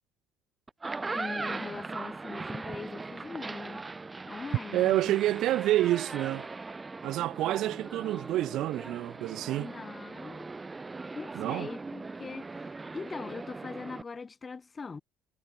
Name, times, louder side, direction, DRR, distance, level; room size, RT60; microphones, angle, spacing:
sound 1, 0.7-14.0, right 3 dB, 20° right, 3.0 m, -39 dB
voice 1, 1.1-3.9 4.3-5.2 9.6-10.5 11.1-15.0, left 4 dB, 25° left, 4.4 m, -42 dB
voice 2, 4.7-6.5 7.0-9.7 11.3-11.7, right 14 dB, 70° right, 1.5 m, -28 dB
cardioid pair, 100°, 0 cm